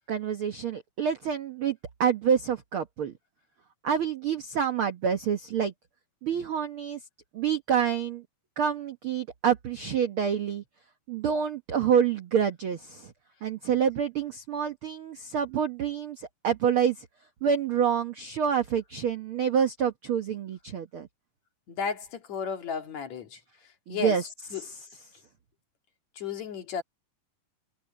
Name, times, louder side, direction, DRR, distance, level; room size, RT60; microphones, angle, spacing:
voice 1, 0.1-3.1 3.8-5.7 6.2-7.0 7.3-8.2 8.6-10.6 11.1-13.1 13.4-17.1 17.4-21.1 23.9-24.2 24.6-24.8, right 7 dB, 70° right, 1.3 m, -27 dB
voice 2, 21.7-23.4 23.9-24.2 24.5-24.6 26.2-26.8, left 6 dB, 55° left, 3.1 m, -33 dB
omnidirectional pair, 4.1 m